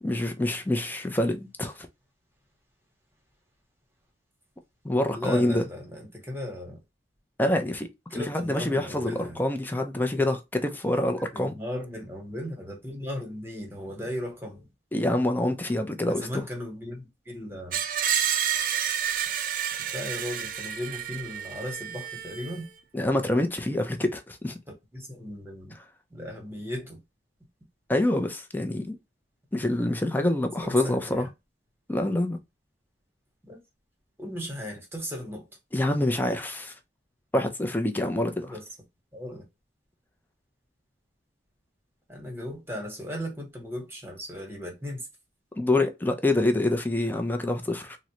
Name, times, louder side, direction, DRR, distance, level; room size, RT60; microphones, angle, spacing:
voice 1, 0.0-1.9 4.8-5.6 7.4-11.5 14.9-16.4 22.9-24.6 27.9-29.0 29.5-31.3 31.9-32.4 35.7-36.7 37.3-38.5 45.6-48.0, left 1 dB, 10° left, 0.4 m, -26 dB
voice 2, 5.1-6.8 8.1-9.4 11.3-14.7 16.1-17.8 19.9-22.7 24.9-25.7 26.1-27.0 30.6-31.3 33.4-33.6 34.2-35.5 38.4-38.6 39.1-39.4 42.1-45.1, left 1 dB, 15° right, 1.1 m, -36 dB
Screech, 17.7-22.7, right 9 dB, 50° right, 0.4 m, -30 dB
3.7 x 2.1 x 2.9 m
head